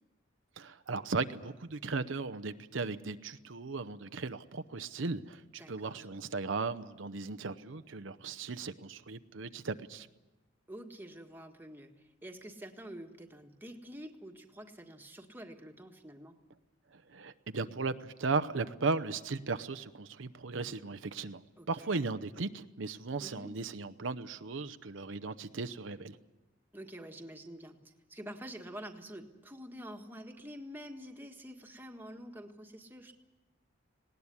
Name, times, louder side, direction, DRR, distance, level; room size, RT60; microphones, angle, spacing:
voice 1, 0.6-10.1 16.9-21.4 21.7-26.2, right 4 dB, 80° right, 11 dB, 0.8 m, -36 dB
voice 2, 5.6-6.1 10.7-16.3 18.6-18.7 21.6-22.0 23.2-23.5 26.7-33.1, equal, 10° right, 3 dB, 1.6 m, -47 dB
19.0 x 18.5 x 9.8 m, 1.1 s
head